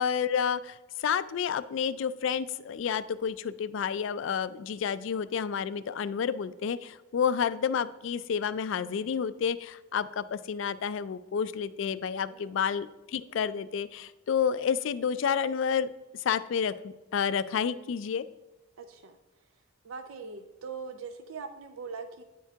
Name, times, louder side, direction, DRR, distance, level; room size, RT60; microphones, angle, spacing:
voice 1, 0.0-18.3, left 7 dB, 65° left, 15 dB, 0.3 m, -30 dB
voice 2, 18.8-19.2 19.8-22.2, right 5 dB, 85° right, 7 dB, 0.5 m, -41 dB
9.3 x 4.6 x 3.5 m, 1.1 s
head